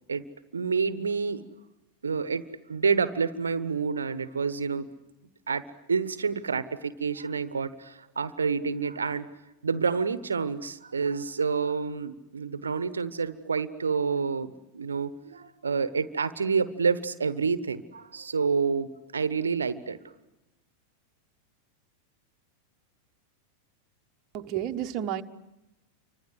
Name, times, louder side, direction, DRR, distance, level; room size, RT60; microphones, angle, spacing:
voice 1, 0.5-1.4 2.0-2.4 2.7-4.9 5.5-9.3 9.6-20.0, right 5 dB, 70° right, 14 dB, 1.1 m, -28 dB
voice 2, 24.3-25.2, right 10 dB, 35° right, 6 dB, 1.3 m, -31 dB
29.5 x 25.0 x 7.9 m, 0.99 s
figure-of-eight pair, 90°, 0 cm